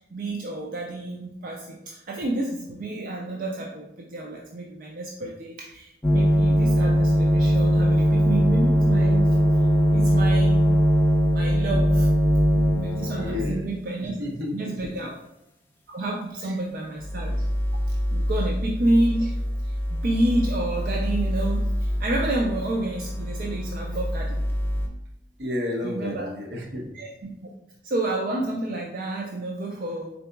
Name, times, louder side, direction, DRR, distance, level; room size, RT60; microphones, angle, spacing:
voice 1, 0.1-9.4 9.9-10.8 11.3-12.1 12.5-14.1 14.5-15.1 15.9-17.5 17.9-24.4 25.8-26.3 26.9-27.5 27.8-30.1, right 2 dB, 50° right, -1 dB, 0.4 m, -29 dB
sound 1, 6.0-13.7 17.0-24.9, equal, 15° left, 0.4 m, -22 dB
voice 2, 13.2-13.7 14.0-14.8 16.4-16.6 25.4-26.9, left 1 dB, 75° right, 0 dB, 0.8 m, -31 dB
3.9 x 3.7 x 2.2 m, 0.82 s
head